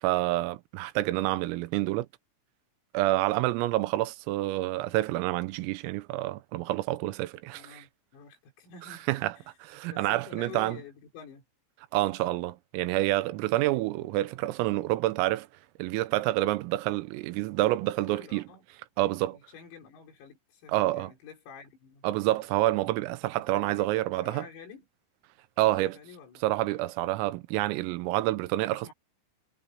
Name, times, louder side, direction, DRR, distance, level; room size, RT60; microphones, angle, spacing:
voice 1, 0.0-2.1 2.9-7.8 9.1-9.3 9.6-10.8 11.9-15.5 15.8-18.4 19.0-19.4 20.7-21.1 22.0-24.5 25.6-26.0 26.4-28.9, right 17 dB, 85° right, 3.6 m, -28 dB
voice 2, 7.5-9.5 9.9-11.4 13.6-14.2 18.1-18.6 19.0-22.1 23.4-24.9 25.7-26.4 28.7-28.9, left 6 dB, 85° left, 8.2 m, -49 dB
omnidirectional pair, 6.0 m